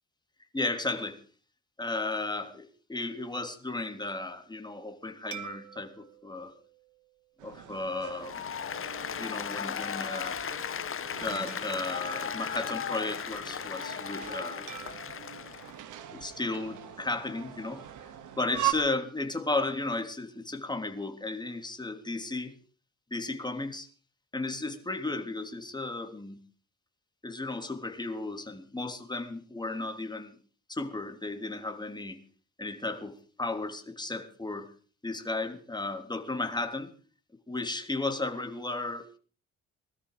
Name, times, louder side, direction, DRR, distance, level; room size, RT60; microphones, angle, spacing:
voice 1, 0.5-1.2 1.8-6.5 7.4-8.4 9.2-10.4 11.2-14.7 16.1-17.8 18.4-22.6 23.1-23.9 24.3-26.4 27.2-30.3 30.7-32.2 32.6-34.7 35.0-36.9 37.5-39.1, left 2 dB, 15° left, 7 dB, 3.2 m, -34 dB
sound 1, 5.3-8.0 8.6-8.8 11.5-13.3 14.7-17.0, right 10 dB, 75° right, 1.8 m, -51 dB
sound 2, 7.4-18.7, right 13 dB, 90° right, 2.4 m, -41 dB
Applause, 8.2-15.7, left 7 dB, 45° left, 1.4 m, -36 dB
21.0 x 13.0 x 4.9 m, 0.40 s
cardioid pair, 90°, 30 cm